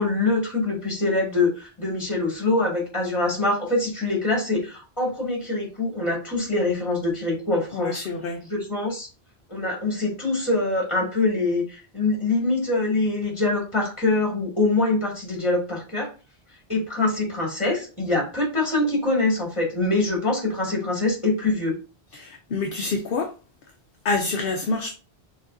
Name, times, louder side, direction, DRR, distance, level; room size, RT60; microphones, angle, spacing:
voice 1, 0.0-8.0 8.5-9.1 9.5-16.1 16.7-21.7, left 2 dB, 30° left, 2.3 m, -24 dB
voice 2, 7.7-8.4 22.1-23.3 24.0-24.9, left 3 dB, 65° left, 0.8 m, -27 dB
6.2 x 3.2 x 2.6 m
omnidirectional pair, 1.1 m